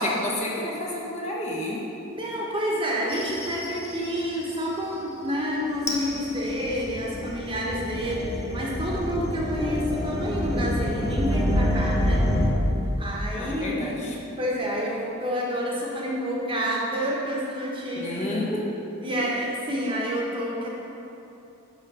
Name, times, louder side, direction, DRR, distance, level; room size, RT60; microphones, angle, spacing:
voice 1, 0.0-1.8 12.4-12.7 13.4-14.1 18.0-18.6, left 1 dB, 30° left, -4 dB, 1.1 m, -30 dB
voice 2, 2.1-12.3 13.0-13.9 14.4-18.3 19.0-20.7, equal, 25° right, -3 dB, 1.2 m, -29 dB
sound 1, 3.1-4.3 5.8-12.5, equal, 15° left, 0.8 m, -27 dB
9.7 x 3.7 x 6.1 m, 2.9 s
head